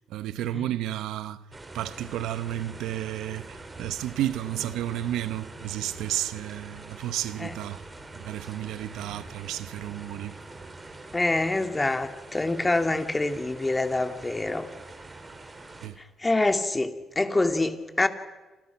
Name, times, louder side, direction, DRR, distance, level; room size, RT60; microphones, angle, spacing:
voice 1, 0.1-1.4 1.7-7.8 8.1-10.3 15.8-15.9, right 13 dB, 90° right, 1.0 m, -32 dB
sound 1, 1.5-15.9, right 2 dB, 25° right, 3.9 m, -45 dB
voice 2, 11.1-14.7 16.2-18.1, left 2 dB, 20° left, 2.4 m, -26 dB
28.0 x 28.0 x 5.9 m
cardioid pair, 90°, 0 cm